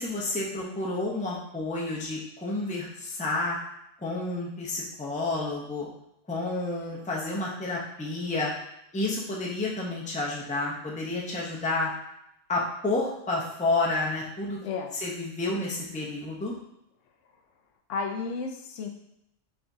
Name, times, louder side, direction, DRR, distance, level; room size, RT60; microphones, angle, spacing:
voice 1, 0.0-3.6 4.0-5.9 6.3-8.5 8.9-11.9 12.5-14.6 15.0-16.6, left 2 dB, 10° left, -4 dB, 0.5 m, -30 dB
voice 2, 17.9-18.9, left 4 dB, 75° left, 4 dB, 0.9 m, -32 dB
5.0 x 3.4 x 2.7 m, 0.80 s
omnidirectional pair, 1.3 m